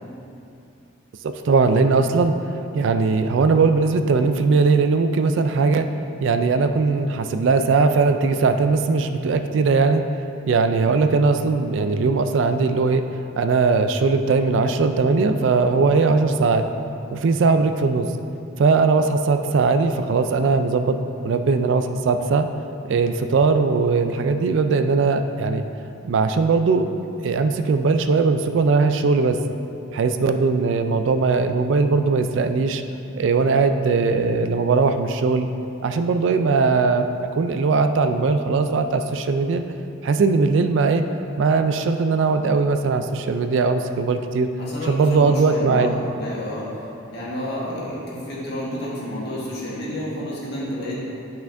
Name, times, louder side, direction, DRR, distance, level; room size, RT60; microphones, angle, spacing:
voice 1, 1.2-2.3 2.7-5.9 6.2-10.0 10.5-13.0 13.4-16.7 17.1-18.1 18.6-22.5 22.9-25.6 26.0-26.9 27.2-29.4 29.9-32.8 33.2-35.5 35.8-37.1 37.3-39.6 40.0-41.0 41.4-44.5 44.9-45.9, right 4 dB, 60° right, 8 dB, 0.3 m, -19 dB
voice 2, 44.6-46.7 47.1-51.0, left 1 dB, 50° left, -6 dB, 1.5 m, -30 dB
9.7 x 5.7 x 2.6 m, 2.7 s
head